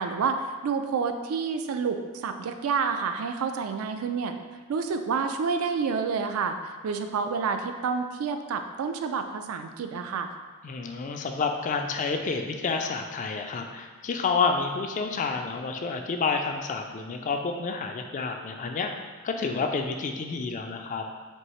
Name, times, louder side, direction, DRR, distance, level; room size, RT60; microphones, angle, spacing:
voice 1, 0.0-4.3 4.7-6.6 6.8-10.3, right 5 dB, 75° right, 7 dB, 0.3 m, -29 dB
voice 2, 10.6-18.9 19.2-21.0, left 4 dB, 35° left, 4 dB, 0.3 m, -29 dB
4.5 x 2.8 x 3.1 m, 1.4 s
head